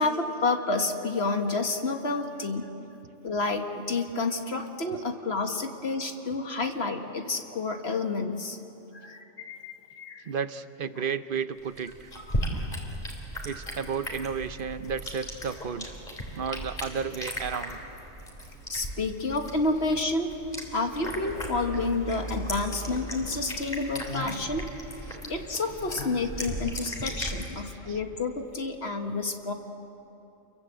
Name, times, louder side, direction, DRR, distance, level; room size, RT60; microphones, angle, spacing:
voice 1, 0.0-2.8 3.2-8.6 8.9-10.3 12.2-12.7 18.7-20.3 20.7-24.7 25.2-29.5, left 3 dB, 55° left, 5 dB, 1.8 m, -30 dB
voice 2, 10.3-12.1 13.4-15.9 16.3-17.8 24.1-24.2 25.1-25.2 26.6-26.7 27.5-28.0, right 6 dB, 50° right, 12 dB, 0.9 m, -33 dB
sound 1, 11.6-27.5, equal, 35° left, 3.9 m, -37 dB
29.5 x 22.5 x 8.1 m, 3.0 s
omnidirectional pair, 1.3 m